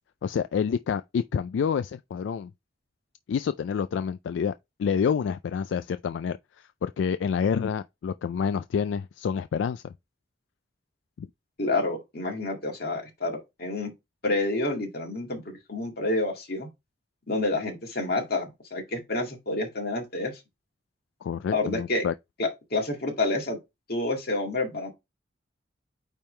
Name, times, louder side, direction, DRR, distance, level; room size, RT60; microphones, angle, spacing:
voice 1, 0.2-2.5 3.3-4.5 4.8-9.9 11.2-11.3 21.2-22.1, left 6 dB, 80° left, 0.3 m, -28 dB
voice 2, 11.6-13.9 14.2-16.7 17.3-20.3 21.5-22.1 22.4-23.6 23.9-24.9, left 2 dB, 55° left, 2.1 m, -29 dB
8.9 x 3.6 x 3.2 m
head